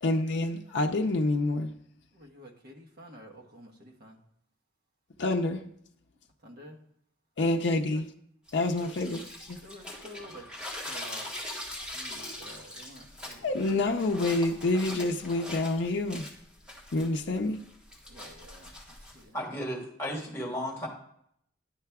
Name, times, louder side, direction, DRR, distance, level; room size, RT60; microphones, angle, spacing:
voice 1, 0.0-1.7 5.2-5.6 7.4-8.0 8.5-9.2 9.5-9.6 13.4-16.2 16.9-17.6, left 2 dB, 65° left, 0.5 m, -27 dB
voice 2, 2.1-4.2 6.4-6.8 7.9-8.0 8.8-9.2 9.5-10.5 10.8-11.5 11.9-13.5 18.1-19.4, equal, 55° right, 1.2 m, -50 dB
sound 1, 8.5-19.2, left 1 dB, 5° right, 1.5 m, -42 dB
voice 3, 19.3-20.9, equal, 15° left, 1.7 m, -34 dB
10.0 x 5.6 x 3.5 m
head